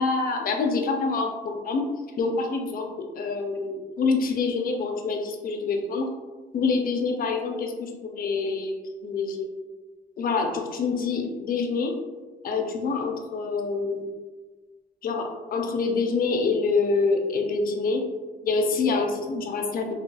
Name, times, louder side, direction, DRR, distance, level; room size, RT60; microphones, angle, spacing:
voice 1, 0.0-1.8 2.2-6.1 6.5-8.7 9.0-9.5 10.2-11.9 12.4-14.1 15.0-18.0 18.4-19.9, left 4 dB, 45° left, 3 dB, 0.5 m, -26 dB
2.8 x 2.8 x 2.2 m, 1.3 s
cardioid pair, 90°, 20 cm